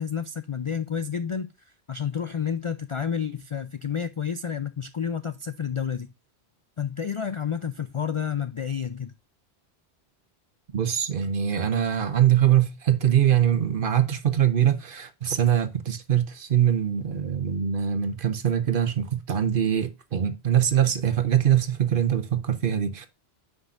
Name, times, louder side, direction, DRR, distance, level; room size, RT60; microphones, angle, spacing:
voice 1, 0.0-1.5 1.9-6.1 6.8-9.1, left 7 dB, 50° left, 0.3 m, -30 dB
voice 2, 10.7-23.1, right 10 dB, 55° right, 1.0 m, -23 dB
9.7 x 5.1 x 2.5 m
omnidirectional pair, 1.1 m